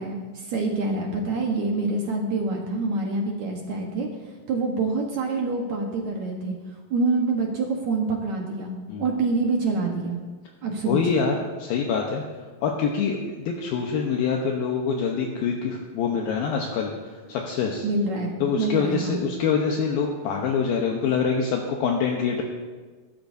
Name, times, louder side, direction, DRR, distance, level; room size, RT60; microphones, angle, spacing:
voice 1, 0.0-4.1 4.5-6.6 6.9-8.7 9.0-10.2 10.6-11.0 17.8-19.2, right 3 dB, 60° right, 0 dB, 2.1 m, -26 dB
voice 2, 10.9-12.2 12.6-17.9 18.4-22.4, left 6 dB, 75° left, 1 dB, 2.6 m, -25 dB
22.5 x 12.5 x 2.7 m, 1.4 s
omnidirectional pair, 4.6 m